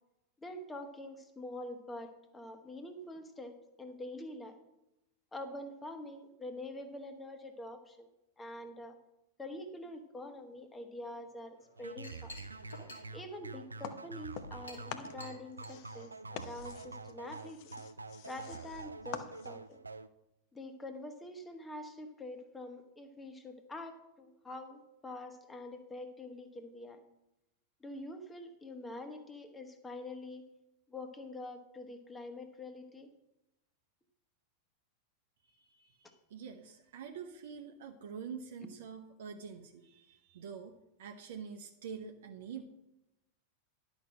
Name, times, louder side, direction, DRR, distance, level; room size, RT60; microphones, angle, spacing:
voice 1, 0.4-4.6 5.3-8.1 8.4-9.0 9.4-12.3 13.1-17.7 18.3-19.8 20.5-27.0 27.8-30.4 30.9-33.1 38.6-38.7, left 1 dB, 15° left, 7 dB, 1.3 m, -45 dB
Chink clink, 11.5-16.9, left 2 dB, 70° left, 2.3 m, -54 dB
sound 1, 11.8-20.1, right 3 dB, 80° right, 0.4 m, -47 dB
sound 2, 13.8-14.6 14.9-19.8, left 10 dB, 45° left, 0.8 m, -47 dB
voice 2, 35.6-42.6, right 6 dB, 60° right, 3 dB, 0.8 m, -46 dB
11.0 x 6.2 x 6.4 m, 0.91 s
figure-of-eight pair, 90°, 0 cm